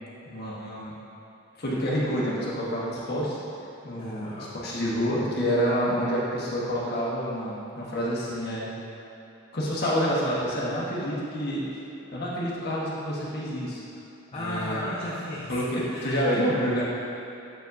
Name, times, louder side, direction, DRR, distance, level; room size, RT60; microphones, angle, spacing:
voice 1, 0.3-0.9 1.6-3.4 3.8-8.7 9.5-11.6 12.1-13.8 14.3-14.8 15.5-16.8, equal, 50° left, -6 dB, 1.4 m, -28 dB
voice 2, 4.0-4.6 14.3-16.1, left 1 dB, 30° left, -5 dB, 0.6 m, -35 dB
8.0 x 7.1 x 2.7 m, 2.9 s
head